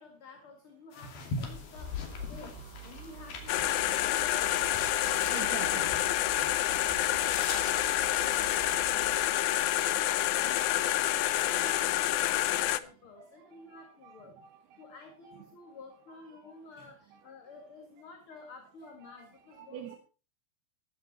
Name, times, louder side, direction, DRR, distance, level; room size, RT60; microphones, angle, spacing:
voice 1, 0.0-14.3 14.8-20.0, left 4 dB, 40° left, 4 dB, 2.4 m, -52 dB
sound 1, 0.9-8.9, left 4 dB, 70° left, 4.4 m, -42 dB
sound 2, 1.7-9.3, right 10 dB, 45° right, 2.6 m, -48 dB
sound 3, 3.5-12.8, left 14 dB, 90° left, 1.7 m, -28 dB
voice 2, 5.3-6.0 12.0-12.1 12.8-15.0 15.2-15.8 16.3-16.6 19.0-19.3 19.5-20.0, right 9 dB, 85° right, 4 dB, 3.5 m, -47 dB
15.0 x 13.0 x 4.3 m, 0.35 s
omnidirectional pair, 4.5 m